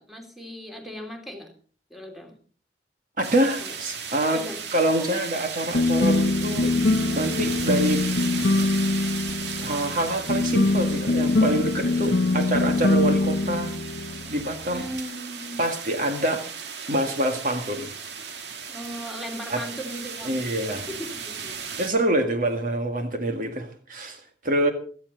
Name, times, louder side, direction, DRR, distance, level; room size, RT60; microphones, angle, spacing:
voice 1, 0.0-1.5 1.9-2.4 3.6-3.7 4.3-4.6 5.0-5.3 14.7-15.6 18.7-20.4 21.0-21.6, equal, ahead, 3 dB, 2.9 m, -37 dB
voice 2, 3.2-4.4 4.7-6.7 7.2-8.1 9.4-13.7 14.3-14.9 15.6-16.5 16.9-17.9 19.5-19.6 20.2-20.9 21.8-24.7, right 1 dB, 50° right, 5 dB, 1.9 m, -26 dB
sound 1, 3.2-21.9, right 6 dB, 80° right, 2.1 m, -36 dB
sound 2, 5.7-15.0, left 2 dB, 70° left, 0.8 m, -24 dB
17.5 x 13.5 x 4.0 m, 0.43 s
head